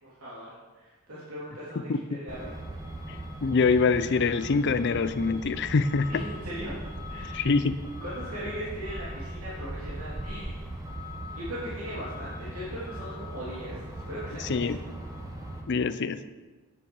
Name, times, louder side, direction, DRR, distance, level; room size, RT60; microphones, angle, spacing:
voice 1, 0.0-2.5 6.1-6.8 7.1-7.6 8.0-10.6 11.3-14.7, equal, 80° right, -8 dB, 3.0 m, -39 dB
Truck, 2.3-15.6, right 1 dB, 15° right, 1.3 m, -39 dB
voice 2, 3.1-6.2 7.3-7.8 14.5-14.8 15.7-16.2, left 4 dB, 55° left, 13 dB, 0.5 m, -25 dB
9.8 x 9.6 x 4.7 m, 1.3 s
head